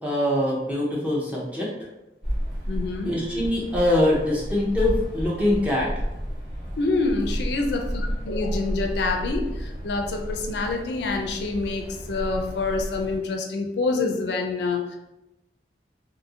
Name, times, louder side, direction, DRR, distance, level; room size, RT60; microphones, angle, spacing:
voice 1, 0.0-1.7 3.0-5.9, left 1 dB, 10° right, -4 dB, 0.5 m, -23 dB
sound 1, 2.2-13.2, equal, 40° right, 1.1 m, -32 dB
voice 2, 2.7-3.1 6.8-15.0, left 3 dB, 70° left, 3 dB, 0.4 m, -27 dB
2.6 x 2.5 x 2.7 m, 0.95 s
head